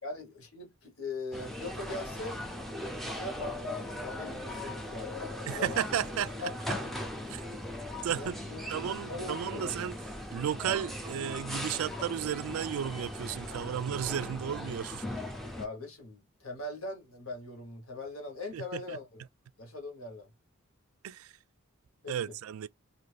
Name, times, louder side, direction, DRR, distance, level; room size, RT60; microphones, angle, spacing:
voice 1, 0.0-2.4 3.1-5.9 6.4-6.9 8.1-8.7 9.1-9.8 15.6-19.2 19.6-20.3 22.0-22.3, left 2 dB, 80° left, 1.2 m, -41 dB
sound 1, 1.3-15.7, left 1 dB, ahead, 0.4 m, -39 dB
voice 2, 5.5-6.5 7.3-7.6 8.0-8.4 8.7-9.9 10.3-15.0 18.5-19.0 21.0-21.3 22.1-22.7, right 9 dB, 80° right, 0.3 m, -34 dB
2.5 x 2.5 x 3.2 m
head